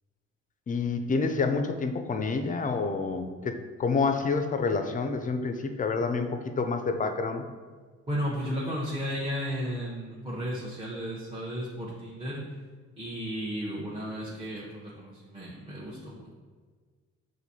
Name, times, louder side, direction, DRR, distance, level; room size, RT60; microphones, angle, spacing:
voice 1, 0.7-7.5, left 4 dB, 25° left, 6 dB, 0.4 m, -28 dB
voice 2, 8.1-12.4 13.0-16.3, equal, 15° right, -7 dB, 0.8 m, -34 dB
5.9 x 2.6 x 2.7 m, 1.5 s
cardioid pair, 90°, 30 cm